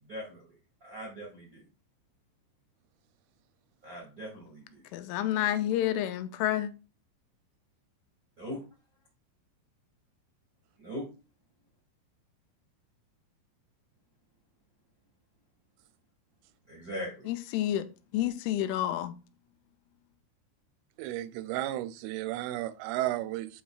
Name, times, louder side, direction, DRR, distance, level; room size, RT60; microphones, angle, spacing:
voice 1, 0.0-0.5 0.8-1.6 3.8-4.8 8.4-8.6 10.8-11.1 16.7-17.3, equal, 60° right, 0.9 m, -40 dB
voice 2, 4.9-6.7 17.3-17.8 18.1-19.1, left 12 dB, 85° left, 3.0 m, -29 dB
voice 3, 21.0-23.6, right 14 dB, 90° right, 3.1 m, -33 dB
8.5 x 5.2 x 2.4 m
omnidirectional pair, 5.6 m